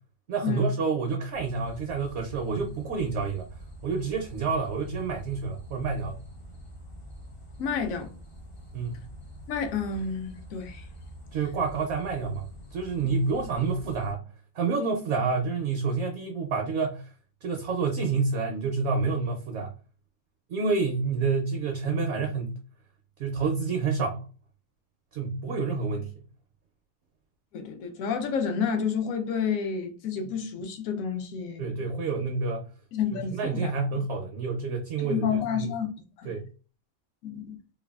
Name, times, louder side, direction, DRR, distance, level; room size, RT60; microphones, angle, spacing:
voice 1, 0.3-3.5 3.8-6.2 8.7-9.0 11.3-14.2 14.5-17.0 17.4-19.7 20.5-22.5 23.2-24.2 25.1-26.1 30.2-30.3 31.6-32.6 33.3-35.3 35.5-35.7 36.2-36.4, right 4 dB, 65° right, 0.7 m, -28 dB
sound 1, 1.3-14.1, equal, 45° left, 0.4 m, -45 dB
voice 2, 7.6-8.1 9.5-10.8 27.5-31.8 32.9-33.7 35.0-35.9 36.2-36.3 37.2-37.6, left 6 dB, 75° left, 1.0 m, -30 dB
3.2 x 2.2 x 2.3 m
omnidirectional pair, 1.5 m